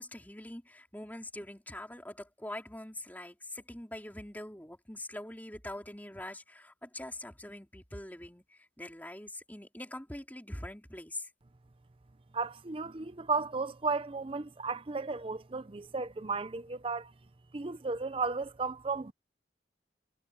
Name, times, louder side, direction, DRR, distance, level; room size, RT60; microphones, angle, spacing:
voice 1, 0.0-11.3, left 1 dB, 10° left, 3.8 m, -44 dB
voice 2, 12.3-17.1 17.5-19.1, right 4 dB, 30° right, 0.6 m, -34 dB
head